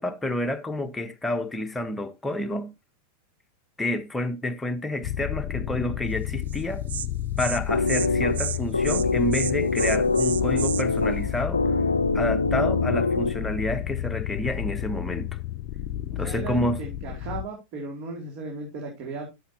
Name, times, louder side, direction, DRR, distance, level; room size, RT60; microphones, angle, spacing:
voice 1, 0.0-2.7 3.8-6.8 7.4-11.6 12.1-15.4 16.2-16.8, left 1 dB, 10° left, 1.1 m, -29 dB
sound 1, 5.0-17.4, left 12 dB, 40° left, 0.7 m, -31 dB
Insect, 6.5-6.6 6.9-7.1 7.4-7.6 7.9-8.1 8.3-8.6 8.8-9.1 9.3-10.8, right 9 dB, 65° right, 0.5 m, -31 dB
sound 2, 7.7-13.7, left 3 dB, 80° left, 0.4 m, -25 dB
voice 2, 16.1-19.3, right 3 dB, 40° right, 2.5 m, -36 dB
12.5 x 6.3 x 2.8 m
figure-of-eight pair, 90°, 0 cm